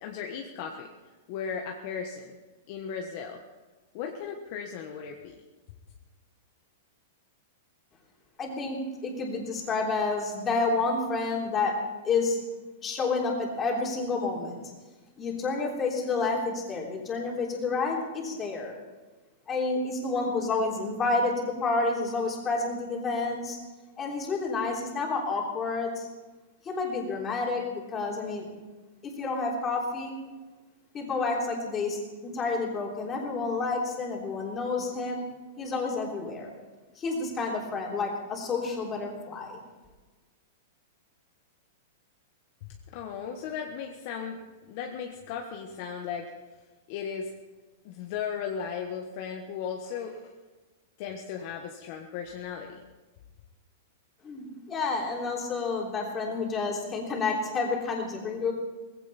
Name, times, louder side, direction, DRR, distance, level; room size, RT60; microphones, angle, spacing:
voice 1, 0.0-0.9 1.3-2.4 2.7-3.4 3.9-5.3 42.6-46.3 46.9-47.3 47.8-50.3 51.0-52.8, left 7 dB, 45° left, 2 dB, 1.3 m, -36 dB
voice 2, 8.4-8.8 9.0-11.7 12.0-12.4 12.8-14.6 15.2-18.7 19.5-23.6 24.0-26.1 26.7-28.5 29.0-30.1 30.9-35.2 35.6-36.5 37.0-39.6 54.2-58.5, left 3 dB, 20° left, -1 dB, 3.5 m, -29 dB
18.5 x 16.0 x 4.3 m, 1.3 s
supercardioid pair, 160°, 0 cm